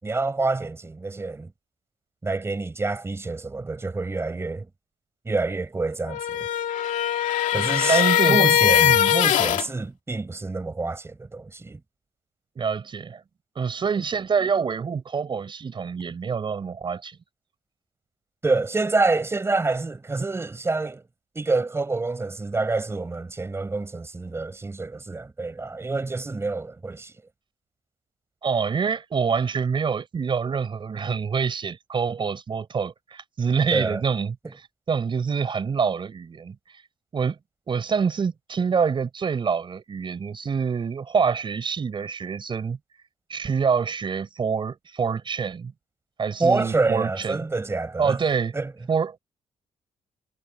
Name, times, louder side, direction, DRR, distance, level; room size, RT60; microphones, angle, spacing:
voice 1, 0.0-1.5 2.2-4.7 5.2-6.5 7.5-11.8 18.4-21.0 21.3-27.1 33.7-34.0 46.4-48.2 48.5-48.7, right 3 dB, 20° right, 4.9 m, -27 dB
sound 1, 6.1-9.7, left 12 dB, 80° left, 2.3 m, -21 dB
voice 2, 7.9-8.6 8.8-9.1 12.6-13.2 13.6-17.2 28.4-36.8 37.1-37.4 37.7-42.8 43.3-45.7 46.2-47.4 48.0-48.5 48.9-49.2, right 6 dB, 40° right, 4.2 m, -26 dB
cardioid pair, 125°, 13 cm